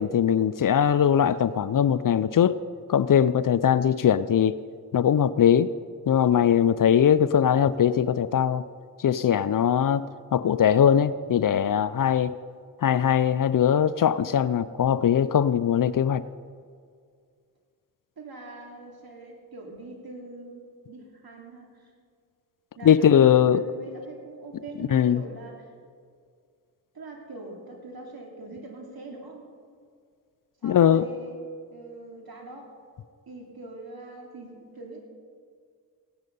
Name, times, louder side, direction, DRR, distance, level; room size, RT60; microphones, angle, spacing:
voice 1, 0.0-2.6 2.9-4.5 4.9-5.7 6.1-8.6 9.0-10.0 10.3-12.3 12.8-16.2 22.8-23.6 24.9-25.2 30.6-31.0, left 9 dB, 50° left, 15 dB, 0.5 m, -21 dB
voice 2, 18.2-21.9 22.7-25.7 26.9-29.5 30.6-31.4 31.7-32.7 33.3-35.0, right 2 dB, 60° right, 1 dB, 2.9 m, -42 dB
16.5 x 10.5 x 5.4 m, 2.1 s
supercardioid pair, 45°, 42 cm